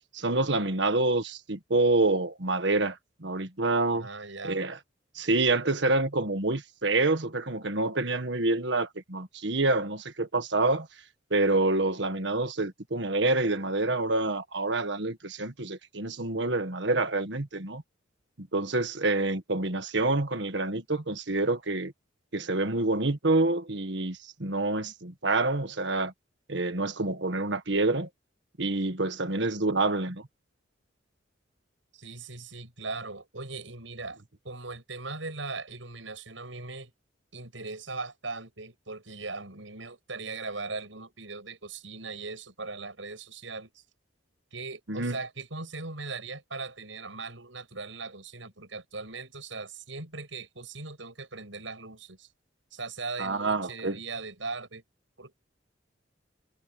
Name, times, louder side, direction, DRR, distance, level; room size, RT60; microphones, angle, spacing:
voice 1, 0.1-4.1 4.4-4.8 5.2-10.9 11.3-17.8 18.4-21.9 22.3-26.1 26.5-28.1 28.6-30.2 44.9-45.2 53.2-54.0, right 2 dB, 65° right, 1.7 m, -27 dB
voice 2, 3.9-4.6 31.9-36.9 37.3-43.8 44.5-52.3 52.7-54.8 55.2-55.4, right 3 dB, 85° right, 7.3 m, -39 dB
head